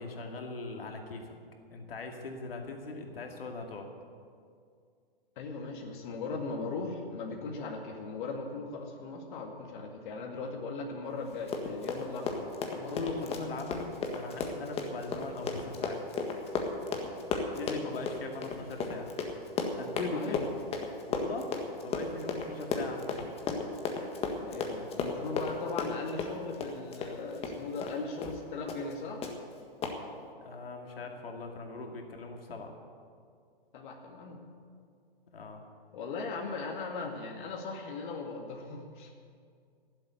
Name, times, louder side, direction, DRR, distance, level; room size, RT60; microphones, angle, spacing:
voice 1, 0.0-1.4 1.7-3.9 12.9-13.9 14.1-16.2 17.5-19.1 19.8-20.5 21.1-21.5 21.8-23.2 30.4-32.7 35.3-35.6, left 3 dB, 75° left, 3 dB, 2.3 m, -40 dB
voice 2, 5.4-13.4 20.0-20.4 24.4-29.3 33.7-34.4 35.9-39.1, left 4 dB, 55° left, 1 dB, 2.0 m, -38 dB
Run, 11.3-28.0 28.2-28.4 28.7-28.9 29.2-29.3 29.8-30.0, left 4 dB, 20° left, 1.6 m, -34 dB
15.5 x 7.8 x 9.3 m, 2.2 s
hypercardioid pair, 130°, 29 cm